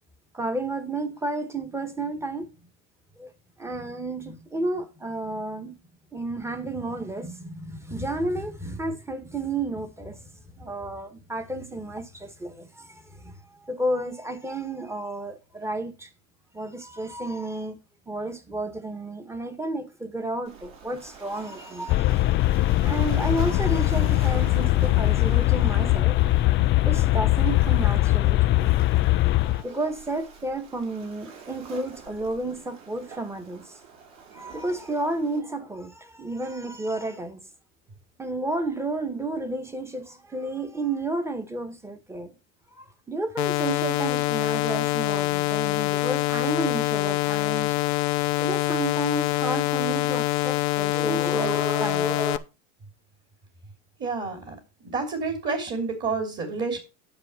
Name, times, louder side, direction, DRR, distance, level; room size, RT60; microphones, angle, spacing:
voice 1, 0.3-2.5 3.2-3.3 3.6-5.7 6.1-10.2 10.5-13.3 13.6-16.1 16.5-17.7 18.1-22.1 22.6-26.2 26.8-28.7 29.4-33.6 34.3-37.4 38.2-42.3 42.8-47.8 48.4-52.4, right 2 dB, 5° right, 1.6 m, -31 dB
Waves surf, 20.5-35.4, right 6 dB, 50° right, 4.7 m, -45 dB
sound 1, 21.9-29.6, left 17 dB, 30° left, 0.4 m, -21 dB
sound 2, 43.4-52.4, left 20 dB, 50° left, 0.9 m, -25 dB
voice 2, 54.0-54.6 54.8-56.8, right 4 dB, 30° right, 3.0 m, -29 dB
10.5 x 6.5 x 4.4 m
supercardioid pair, 130°, 38 cm